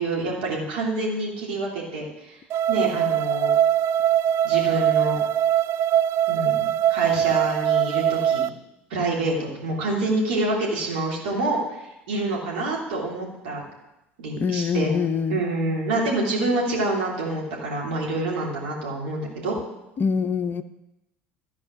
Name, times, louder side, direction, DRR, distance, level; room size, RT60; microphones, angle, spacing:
voice 1, 0.0-2.4 2.7-3.5 4.4-5.2 6.3-8.5 8.9-11.8 12.1-13.6 14.2-14.9 15.3-19.6, right 2 dB, 70° right, -4 dB, 3.1 m, -27 dB
sound 1, 2.5-8.5, right 10 dB, 45° right, 0.3 m, -22 dB
voice 2, 14.4-15.4 20.0-20.6, left 6 dB, 35° left, 10 dB, 0.6 m, -24 dB
13.5 x 4.8 x 6.1 m, 0.92 s
figure-of-eight pair, 65°, 6 cm